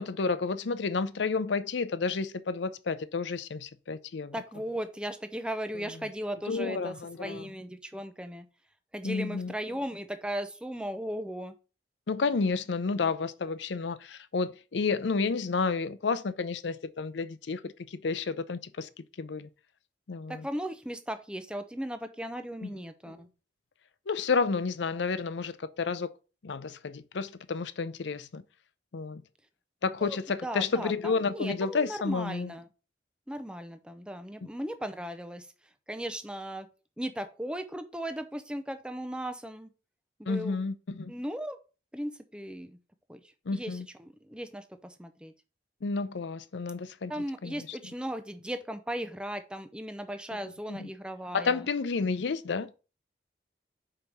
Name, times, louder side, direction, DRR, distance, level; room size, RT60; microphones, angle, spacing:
voice 1, 0.0-4.3 6.5-7.5 9.0-9.5 12.1-18.9 19.2-19.5 20.1-20.5 22.6-23.1 24.1-26.1 26.4-28.4 28.9-29.2 29.8-32.5 40.3-41.1 43.5-43.9 45.8-47.8 50.7-50.9 51.3-52.7, left 4 dB, 80° left, 0.5 m, -31 dB
voice 2, 4.3-8.5 8.9-11.5 20.3-23.3 30.0-32.7 33.3-35.5 35.9-36.7 37.0-39.7 40.2-40.6 41.1-41.6 41.9-42.8 43.1-43.2 43.5-45.3 47.1-51.6, equal, 5° right, 0.5 m, -37 dB
5.0 x 4.6 x 5.3 m
head